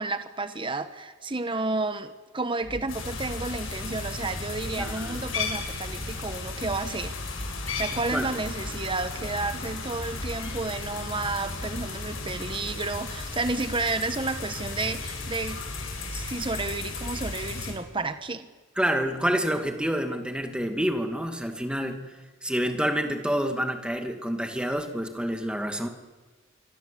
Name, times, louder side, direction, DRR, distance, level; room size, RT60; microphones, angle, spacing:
voice 1, 0.0-7.1 7.7-15.6 16.1-18.5, right 3 dB, 25° right, 10 dB, 1.2 m, -31 dB
sound 1, 2.6-12.9, equal, 50° left, 2.1 m, -42 dB
sound 2, 2.9-17.7, left 3 dB, 80° left, 7.7 m, -35 dB
voice 2, 4.8-5.2 8.1-8.3 18.8-25.9, equal, 5° right, 5 dB, 2.4 m, -28 dB
25.0 x 24.5 x 8.5 m, 1.3 s
head